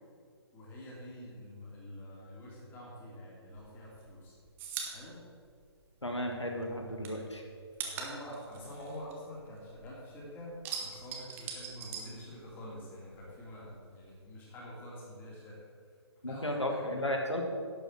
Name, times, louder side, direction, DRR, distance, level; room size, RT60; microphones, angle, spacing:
voice 1, 0.5-4.3 4.9-5.3 7.8-15.6 16.3-16.8, equal, 15° left, -5 dB, 2.9 m, -46 dB
sound 1, 3.5-6.3 6.6-9.9 10.2-12.8 13.1-14.2, right 6 dB, 15° right, 1.0 m, -42 dB
voice 2, 6.0-7.4 16.2-17.4, left 1 dB, 85° left, 2 dB, 1.8 m, -34 dB
11.0 x 7.6 x 6.1 m, 2.1 s
figure-of-eight pair, 135°, 14 cm